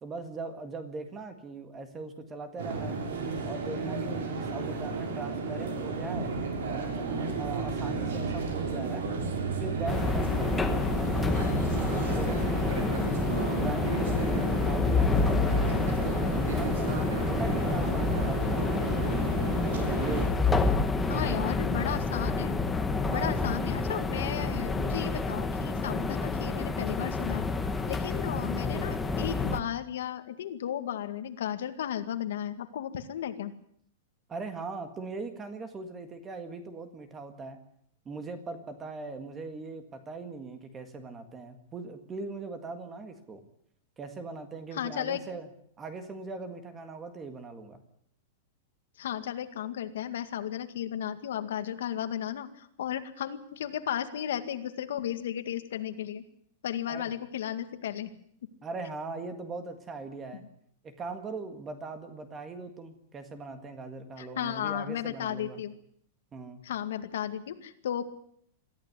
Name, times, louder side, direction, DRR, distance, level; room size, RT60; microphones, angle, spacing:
voice 1, 0.0-3.0 3.4-6.3 6.7-9.1 9.6-11.7 12.1-13.0 13.4-19.5 20.0-21.6 23.1-23.6 34.3-37.6 38.1-43.4 44.0-45.5 45.8-47.8 56.9-57.1 58.6-60.4 60.8-65.6 66.3-66.6, right 3 dB, 15° right, 9 dB, 1.8 m, -40 dB
sound 1, 2.6-20.3, right 4 dB, 80° right, 6.9 m, -33 dB
sound 2, 9.9-29.6, left 3 dB, 5° left, 1.2 m, -28 dB
voice 2, 21.1-22.6 23.1-27.4 27.9-33.5 44.7-45.2 49.0-56.2 56.6-58.1 64.2-65.7 66.6-68.0, left 10 dB, 70° left, 9 dB, 2.0 m, -34 dB
22.5 x 14.5 x 9.7 m, 0.68 s
supercardioid pair, 180°, 0 cm